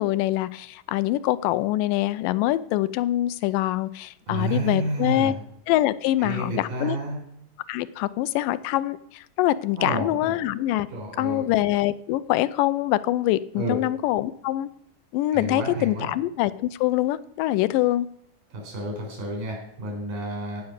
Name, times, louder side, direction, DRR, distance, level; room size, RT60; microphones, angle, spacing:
voice 1, 0.0-5.3 5.7-7.0 7.7-10.9 11.2-14.7 15.1-18.1, left 15 dB, 90° left, 2.2 m, -24 dB
voice 2, 4.3-5.3 6.2-7.2 9.7-10.4 10.9-11.5 13.5-13.8 15.3-16.1 18.5-20.6, right 1 dB, 80° right, 6.1 m, -30 dB
16.0 x 5.9 x 8.0 m
omnidirectional pair, 3.8 m